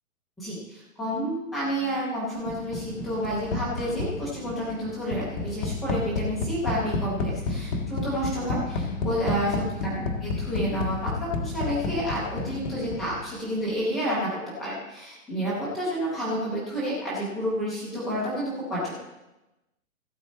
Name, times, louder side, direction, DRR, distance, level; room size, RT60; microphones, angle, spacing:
voice 1, 0.4-14.3 14.6-19.0, equal, ahead, -9 dB, 0.4 m, -30 dB
sound 1, 2.5-13.3, left 3 dB, 65° left, 1.7 m, -31 dB
16.0 x 8.0 x 4.0 m, 0.99 s
hypercardioid pair, 160°, 42 cm